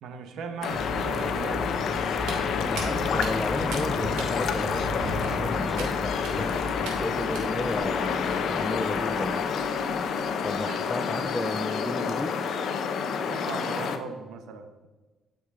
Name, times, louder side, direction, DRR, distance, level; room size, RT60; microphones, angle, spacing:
voice 1, 0.0-1.7 10.7-10.8 13.2-14.9, right 5 dB, 70° right, 7 dB, 1.2 m, -38 dB
sound 1, 0.6-14.0, left 6 dB, 60° left, 0.9 m, -28 dB
sound 2, 0.7-10.7, left 2 dB, 30° left, 1.2 m, -37 dB
Walk footsteps, 2.2-7.8, right 3 dB, 85° right, 2.6 m, -40 dB
voice 2, 2.6-6.6 7.0-9.5 10.4-12.4, left 1 dB, 10° left, 13 dB, 0.4 m, -34 dB
10.0 x 6.6 x 4.9 m, 1.2 s
cardioid pair, 125°, 0 cm